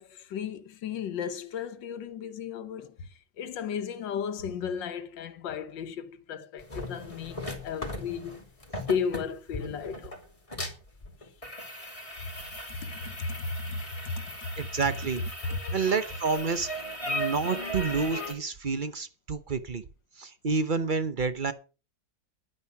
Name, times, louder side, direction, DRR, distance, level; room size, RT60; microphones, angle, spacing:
voice 1, 0.0-8.4 8.8-10.2 12.7-14.7 15.4-15.6, left 6 dB, 80° left, 1.6 m, -35 dB
sound 1, 6.6-18.3, left 1 dB, 20° left, 2.8 m, -37 dB
voice 2, 14.6-15.2 15.7-16.7 17.1-19.8 20.2-21.5, right 4 dB, 40° right, 0.7 m, -29 dB
10.5 x 9.3 x 5.9 m
omnidirectional pair, 2.0 m